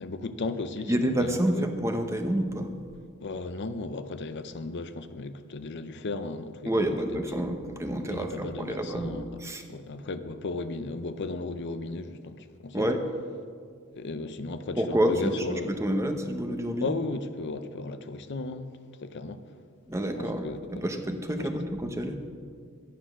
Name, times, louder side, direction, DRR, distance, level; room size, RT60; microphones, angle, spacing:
voice 1, 0.0-1.7 3.2-7.2 8.0-9.3 9.7-12.9 13.9-15.7 16.8-19.4 20.2-20.6 21.4-21.5, left 3 dB, 50° left, 0.6 m, -35 dB
voice 2, 0.9-2.7 6.7-9.6 12.7-13.0 14.8-16.9 19.9-22.2, equal, 15° right, 0.9 m, -28 dB
12.0 x 10.0 x 6.1 m
head